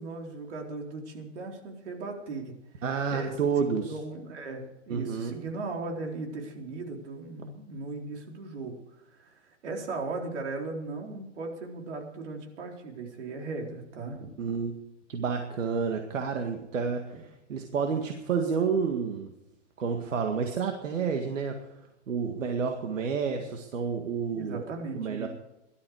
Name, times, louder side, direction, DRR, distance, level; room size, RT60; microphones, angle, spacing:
voice 1, 0.0-2.8 3.1-14.3 17.1-17.2 24.3-25.3, right 3 dB, 65° right, 1 dB, 4.2 m, -38 dB
voice 2, 2.8-4.0 4.9-5.4 14.4-14.8 15.1-19.3 19.8-21.7 22.1-24.6 25.0-25.3, right 6 dB, 80° right, 4 dB, 2.0 m, -30 dB
18.5 x 12.5 x 4.8 m, 0.92 s
hypercardioid pair, 155°, 38 cm